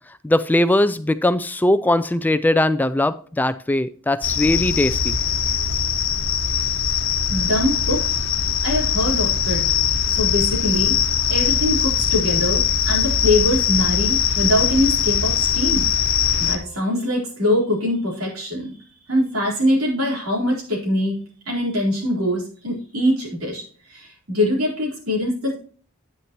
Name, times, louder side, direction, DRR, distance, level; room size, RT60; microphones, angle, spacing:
voice 1, 0.2-5.1, left 1 dB, 10° left, 13 dB, 0.3 m, -20 dB
sound 1, 4.2-16.6, left 7 dB, 65° left, 1.0 m, -21 dB
voice 2, 7.3-8.1 8.6-9.6 10.1-11.0 11.3-15.8 16.4-18.7 19.1-21.1 21.5-23.6 23.9-25.6, left 1 dB, 80° right, -3 dB, 4.1 m, -23 dB
9.4 x 9.2 x 3.0 m, 0.43 s
head